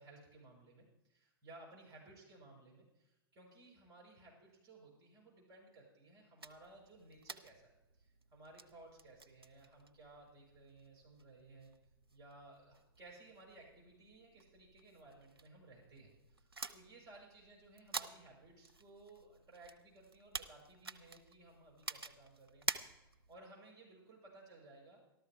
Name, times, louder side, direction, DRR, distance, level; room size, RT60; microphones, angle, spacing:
voice 1, 0.0-11.7 12.1-25.0, right 2 dB, 30° right, -2 dB, 6.1 m, -59 dB
sound 1, 6.4-23.4, right 3 dB, 80° right, 0.8 m, -50 dB
13.5 x 13.0 x 4.7 m, 0.95 s
figure-of-eight pair, 95°, 12 cm